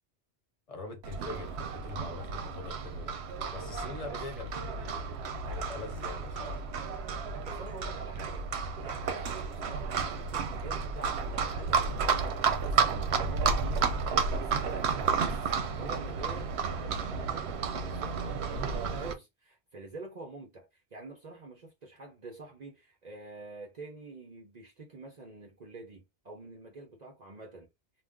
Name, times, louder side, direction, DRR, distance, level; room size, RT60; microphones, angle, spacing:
voice 1, 0.7-3.2 3.5-5.0 5.5-6.6, left 3 dB, 40° left, 0.7 m, -43 dB
Livestock farm animals working animals, 1.0-19.1, right 5 dB, 80° right, 0.8 m, -32 dB
voice 2, 7.4-8.5 8.8-27.7, right 2 dB, 45° right, 0.7 m, -47 dB
2.5 x 2.0 x 3.5 m
omnidirectional pair, 1.1 m